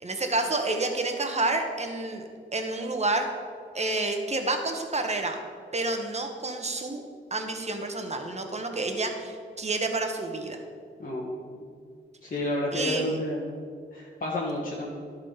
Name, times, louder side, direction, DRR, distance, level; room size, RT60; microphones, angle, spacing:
voice 1, 0.0-2.2 2.5-3.3 3.7-5.4 5.7-7.0 7.3-10.6 12.7-13.2, right 2 dB, 35° right, 4 dB, 1.3 m, -29 dB
voice 2, 11.0-11.7 12.2-13.5 13.9-14.9, left 1 dB, 45° left, -5 dB, 1.6 m, -30 dB
11.5 x 4.3 x 5.7 m, 2.2 s
cardioid pair, 55°, 20 cm